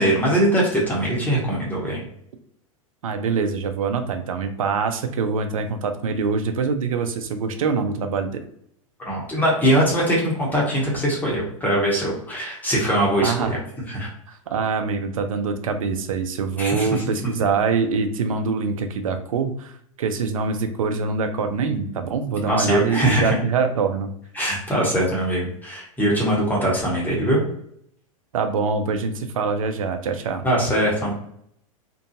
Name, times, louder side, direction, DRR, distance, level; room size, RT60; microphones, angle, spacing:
voice 1, 0.0-2.0 9.0-13.6 13.9-14.1 16.6-17.0 22.5-23.4 24.3-27.4 30.4-31.1, right 1 dB, 10° left, -4 dB, 0.9 m, -21 dB
voice 2, 3.0-8.4 13.2-13.6 14.3-24.1 28.3-30.4, right 5 dB, 75° right, 7 dB, 0.4 m, -24 dB
2.5 x 2.2 x 2.7 m, 0.70 s
hypercardioid pair, 100°, 18 cm